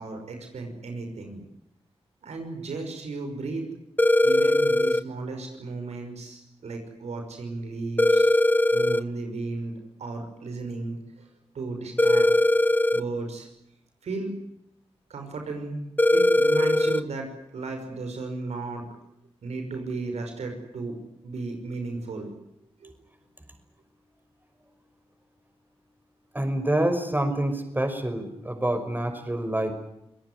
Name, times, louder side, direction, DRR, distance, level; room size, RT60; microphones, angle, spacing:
voice 1, 0.0-1.4 2.2-3.7 4.2-8.3 8.7-9.7 10.0-11.0 11.5-12.3 12.9-13.5 14.0-14.3 15.1-15.8 16.1-18.8 19.4-21.0 21.2-22.3 22.8-22.9, right 3 dB, 85° right, 4 dB, 5.8 m, -34 dB
sound 1, 4.0-5.0 8.0-9.0 12.0-13.0 16.0-17.0, left 1 dB, 15° left, 0.9 m, -20 dB
voice 2, 26.3-29.9, right 1 dB, 15° right, 7 dB, 5.6 m, -27 dB
26.5 x 18.0 x 9.7 m, 0.81 s
cardioid pair, 45°, 11 cm